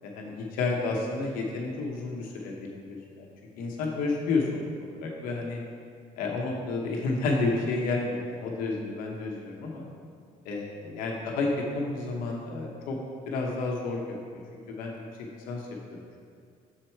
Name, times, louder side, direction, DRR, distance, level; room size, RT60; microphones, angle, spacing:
voice 1, 0.0-3.3 3.6-5.6 6.2-9.8 10.4-13.0 13.3-14.2 14.7-16.2, left 3 dB, 85° left, -1 dB, 0.9 m, -31 dB
6.7 x 4.5 x 4.4 m, 2.2 s
cardioid pair, 115°, 14 cm